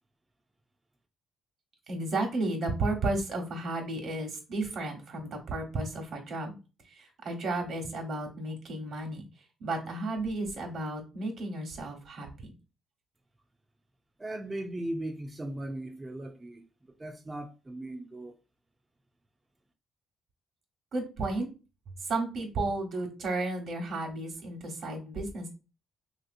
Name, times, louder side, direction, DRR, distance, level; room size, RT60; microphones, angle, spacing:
voice 1, 1.9-6.6 6.9-9.2 9.6-12.5 20.9-21.5 22.0-25.5, right 2 dB, 65° right, 1.1 m, -33 dB
voice 2, 14.2-18.3, right 1 dB, 20° right, 0.5 m, -38 dB
3.2 x 2.8 x 2.5 m
cardioid pair, 90°, 0 cm